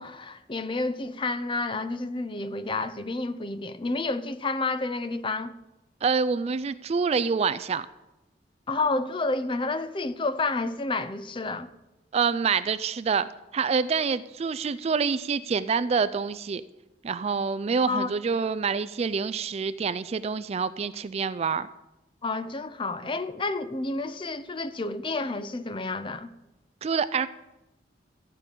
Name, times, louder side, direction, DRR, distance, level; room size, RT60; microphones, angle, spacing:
voice 1, 0.0-5.5 8.7-11.7 17.9-18.1 22.2-26.3, left 3 dB, 30° left, 0.6 m, -30 dB
voice 2, 6.0-7.9 12.1-16.6 17.0-21.7 26.8-27.3, right 5 dB, 35° right, 0.3 m, -26 dB
14.0 x 5.2 x 8.3 m
head